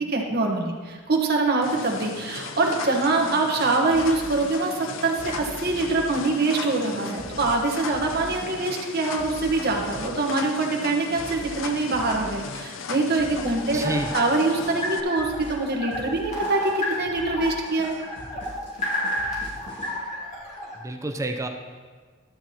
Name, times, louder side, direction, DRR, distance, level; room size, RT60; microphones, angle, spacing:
voice 1, 0.1-18.0, right 3 dB, 55° right, 0 dB, 1.2 m, -24 dB
sound 1, 1.6-15.0, left 5 dB, 75° left, 0.5 m, -37 dB
sound 2, 3.9-19.9, left 1 dB, 60° left, 1.8 m, -43 dB
sound 3, 13.2-20.7, left 1 dB, 35° left, 2.1 m, -31 dB
voice 2, 13.7-14.2 20.7-21.5, right 2 dB, 15° right, 4 dB, 0.5 m, -29 dB
12.5 x 7.6 x 2.9 m, 1.5 s
head